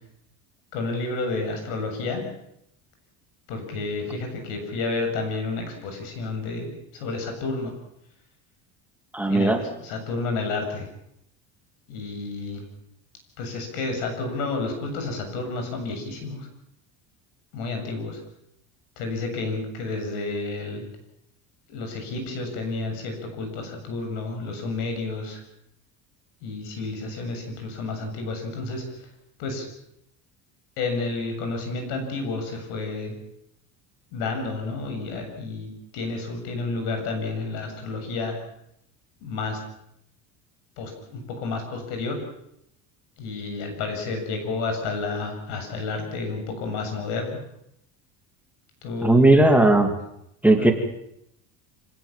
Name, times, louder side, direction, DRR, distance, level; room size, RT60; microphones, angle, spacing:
voice 1, 0.7-2.2 3.5-7.7 9.3-10.9 11.9-12.6 13.4-16.5 17.5-18.2 19.0-20.8 21.7-25.4 26.4-28.8 29.4-29.7 30.8-33.1 34.1-38.3 39.2-39.6 40.8-42.2 43.2-47.4 48.8-49.5 50.6-50.7, left 3 dB, 90° left, 5 dB, 7.5 m, -30 dB
voice 2, 9.1-9.6 49.0-50.0 50.4-50.7, right 2 dB, 5° right, 3 dB, 2.4 m, -17 dB
26.5 x 17.5 x 7.4 m, 0.78 s
cardioid pair, 145°, 39 cm